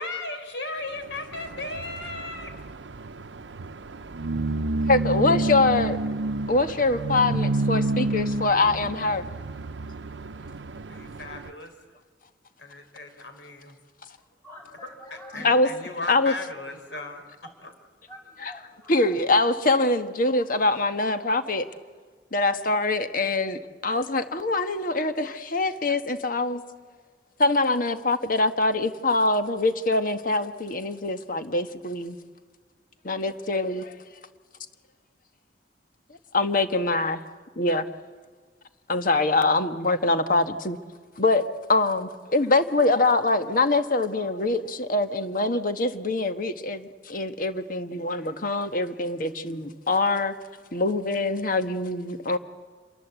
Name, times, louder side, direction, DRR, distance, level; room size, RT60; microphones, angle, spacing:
voice 1, 0.0-2.5 10.9-11.7 12.6-13.7 15.3-17.2 17.6-17.7, left 2 dB, 80° left, 6 dB, 4.1 m, -36 dB
sound 1, 1.1-11.5, right 2 dB, 85° right, 0.7 m, -30 dB
voice 2, 4.9-6.0 6.5-9.2 15.4-15.7 16.1-16.3 18.4-18.5 18.9-21.7 22.3-26.6 27.4-32.2 33.0-33.9 36.3-37.2 37.6-37.8 38.9-40.8 41.2-41.4 41.7-50.3 50.7-52.4, left 2 dB, 50° left, 9 dB, 1.3 m, -24 dB
voice 3, 14.2-15.8 16.9-17.0 17.4-17.7 18.1-19.2, equal, 15° left, 1 dB, 7.2 m, -46 dB
28.5 x 23.0 x 8.1 m, 1.5 s
head